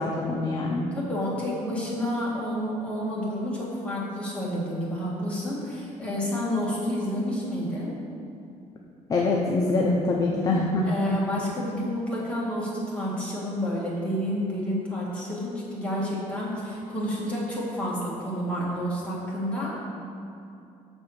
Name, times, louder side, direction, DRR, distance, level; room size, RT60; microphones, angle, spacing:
voice 1, 0.0-0.9 9.1-10.9, left 2 dB, 30° left, -1 dB, 0.6 m, -24 dB
voice 2, 0.9-7.9 10.8-19.7, equal, 10° left, -7 dB, 1.7 m, -29 dB
6.4 x 4.4 x 6.5 m, 2.6 s
cardioid pair, 160°, 13 cm